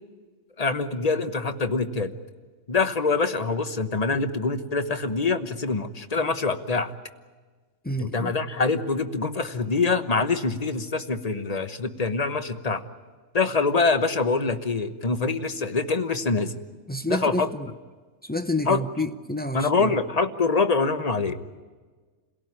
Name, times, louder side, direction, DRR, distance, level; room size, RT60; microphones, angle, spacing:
voice 1, 0.6-2.1 2.7-6.9 8.0-12.8 13.3-16.5 17.1-17.5 18.7-18.8 19.5-21.4, left 4 dB, 30° left, 9 dB, 1.1 m, -25 dB
voice 2, 7.8-8.4 16.9-17.7 18.2-20.0, left 1 dB, 15° left, 8 dB, 0.3 m, -29 dB
28.5 x 17.5 x 9.7 m, 1.4 s
omnidirectional pair, 1.4 m